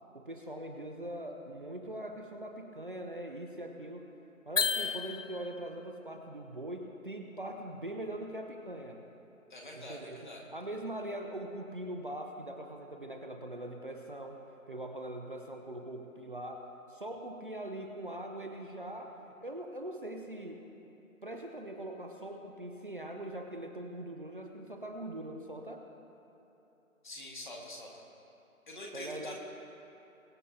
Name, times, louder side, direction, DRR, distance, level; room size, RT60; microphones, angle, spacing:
voice 1, 0.1-4.0 4.5-9.0 9.8-10.2 10.5-20.6 21.2-25.8 28.9-29.3, right 1 dB, 40° right, 3 dB, 0.8 m, -42 dB
sound 1, 4.6-5.7, left 5 dB, 60° left, 0.6 m, -32 dB
voice 2, 9.5-10.4 27.0-28.0 28.7-29.4, left 1 dB, 35° left, -1 dB, 1.8 m, -45 dB
23.0 x 8.2 x 2.8 m, 3.0 s
figure-of-eight pair, 160°, 43 cm